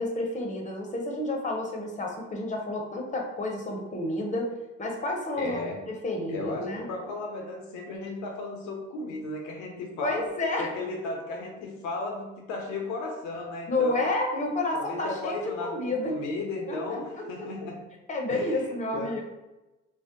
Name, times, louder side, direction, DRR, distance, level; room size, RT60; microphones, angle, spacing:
voice 1, 0.0-4.5 4.8-5.6 5.9-6.9 10.0-10.7 13.7-16.1 16.7-17.5 18.1-19.2, left 2 dB, 25° left, 1 dB, 0.8 m, -30 dB
voice 2, 5.4-5.8 6.3-10.3 10.6-14.0 14.7-17.8 18.3-18.6 18.9-19.1, left 2 dB, 75° left, 1 dB, 0.6 m, -35 dB
2.5 x 2.0 x 3.7 m, 1.0 s
supercardioid pair, 65°, 30 cm